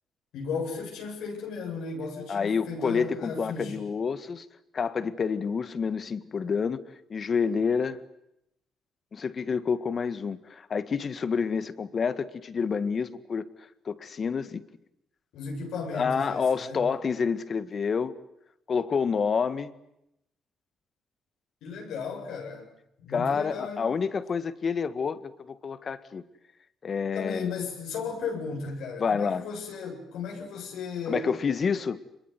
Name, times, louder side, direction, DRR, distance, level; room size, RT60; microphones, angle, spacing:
voice 1, 0.3-3.8 15.3-16.9 21.6-22.7 23.0-23.8 27.1-31.3, left 4 dB, 85° left, 7.9 m, -35 dB
voice 2, 2.3-4.4 4.7-6.8 7.1-8.0 9.1-13.5 13.8-14.6 15.9-18.1 18.7-19.7 23.1-26.2 26.8-27.6 29.0-29.5 31.1-32.0, left 6 dB, 45° left, 1.8 m, -28 dB
26.0 x 22.5 x 9.6 m
cardioid pair, 90°, 0 cm